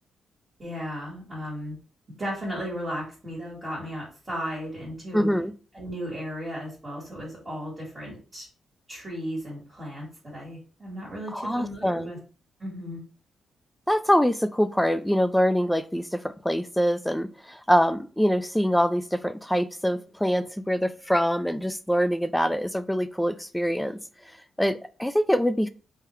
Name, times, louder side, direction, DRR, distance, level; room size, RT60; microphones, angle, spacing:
voice 1, 0.6-1.8 2.2-5.3 5.7-8.5 8.9-12.2 12.6-13.0, equal, 20° right, -6 dB, 2.0 m, -35 dB
voice 2, 5.1-5.5 11.3-12.1 13.9-16.2 16.4-24.0 24.6-25.7, equal, 5° left, 12 dB, 0.3 m, -24 dB
3.7 x 2.8 x 3.1 m, 0.37 s
cardioid pair, 105°, 0 cm